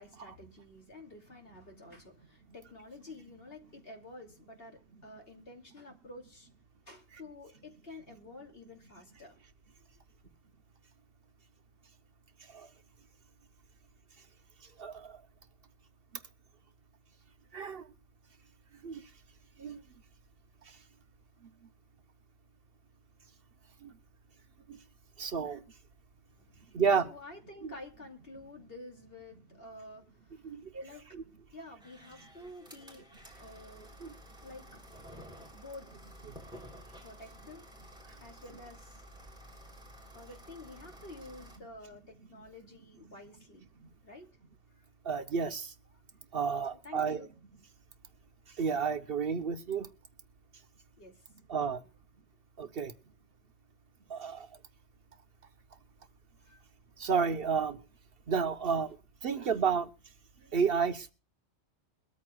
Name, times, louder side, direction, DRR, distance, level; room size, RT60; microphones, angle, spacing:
voice 1, 0.0-6.5 6.9-9.4 26.3-31.2 31.5-33.1 33.4-33.9 34.4-35.9 37.0-37.7 38.2-39.0 40.1-43.7 44.0-44.3 44.7-44.9 46.8-47.3 51.0-51.2 56.4-56.6, left 2 dB, 55° left, 3.0 m, -50 dB
voice 2, 14.8-15.2 17.5-17.9 18.8-19.0 19.6-19.8 20.7-20.8 23.8-23.9 24.7-24.8 25.2-25.6 26.7-27.1 27.6-27.7 30.4-30.8 31.1-31.2 34.0-34.1 36.3-36.4 45.0-45.7 46.3-47.3 48.6-49.9 51.5-51.8 52.6-53.0 54.1-54.5 57.0-57.8 58.3-59.0 59.2-59.9 60.5-61.1, right 6 dB, 60° right, 1.0 m, -31 dB
sound 1, 31.8-41.6, equal, 5° right, 3.4 m, -52 dB
22.0 x 13.5 x 2.3 m
omnidirectional pair, 1.2 m